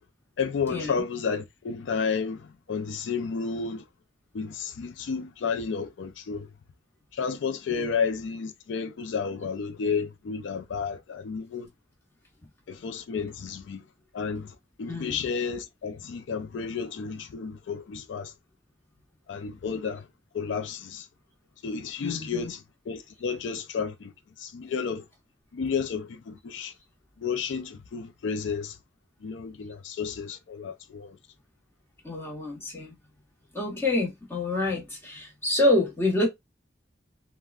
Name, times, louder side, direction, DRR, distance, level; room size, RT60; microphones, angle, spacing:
voice 1, 0.4-2.4 2.7-3.8 4.3-6.5 7.2-11.7 12.7-13.8 14.1-14.5 14.8-18.3 19.3-20.0 20.3-21.0 21.6-24.1 24.4-25.0 25.5-26.7 27.2-28.7 29.2-31.2, left 5 dB, 85° left, 0.4 m, -31 dB
voice 2, 14.9-15.2 22.0-22.5 32.0-32.9 33.5-36.3, left 2 dB, 15° left, 0.9 m, -27 dB
3.5 x 2.1 x 2.4 m
head